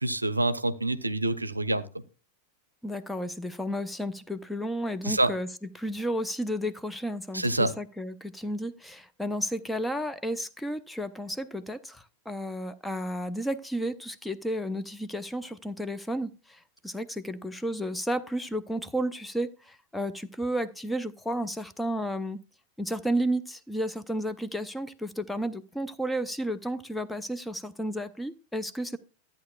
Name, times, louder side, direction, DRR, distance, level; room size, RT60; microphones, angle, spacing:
voice 1, 0.0-1.8 5.0-5.3 7.3-7.7, right 2 dB, 85° right, 0.5 m, -26 dB
voice 2, 2.8-5.5 5.8-22.4 22.8-29.0, equal, 5° left, 0.6 m, -32 dB
13.0 x 8.8 x 2.4 m
figure-of-eight pair, 90°, 0 cm